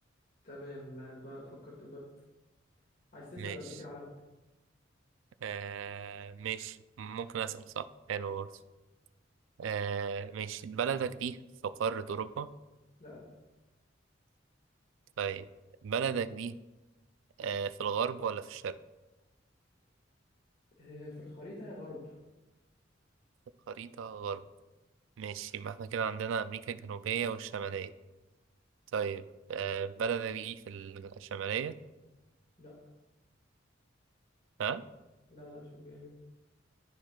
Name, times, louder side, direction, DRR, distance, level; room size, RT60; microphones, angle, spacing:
voice 1, 0.4-2.1 3.1-4.1 13.0-13.3 20.8-22.2 32.6-32.8 35.3-36.1, left 1 dB, 50° left, -5 dB, 1.9 m, -46 dB
voice 2, 5.4-8.5 9.6-11.4 11.6-12.5 15.2-15.5 15.8-16.5 17.4-18.8 23.7-24.4 25.2-27.9 28.9-29.2 29.5-31.8 34.6-34.8, right 7 dB, 90° right, 13 dB, 0.4 m, -35 dB
11.5 x 4.5 x 2.4 m, 1.1 s
head